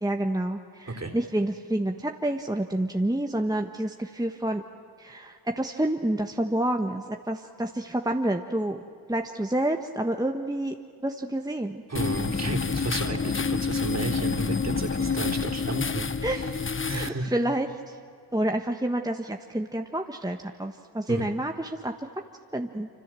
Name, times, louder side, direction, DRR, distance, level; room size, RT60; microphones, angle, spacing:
voice 1, 0.0-4.6 5.0-8.8 9.1-10.7 11.0-11.8 15.0-15.1 16.2-16.5 16.9-18.0 18.3-21.9 22.5-22.9, right 1 dB, 10° right, 4 dB, 1.4 m, -28 dB
voice 2, 11.9-16.5 16.9-17.3 21.1-21.3, right 2 dB, 40° right, 5 dB, 3.7 m, -32 dB
sound 1, 12.0-17.1, left 5 dB, 30° left, 0.9 m, -28 dB
26.0 x 25.5 x 7.7 m, 2.4 s
cardioid pair, 45°, 40 cm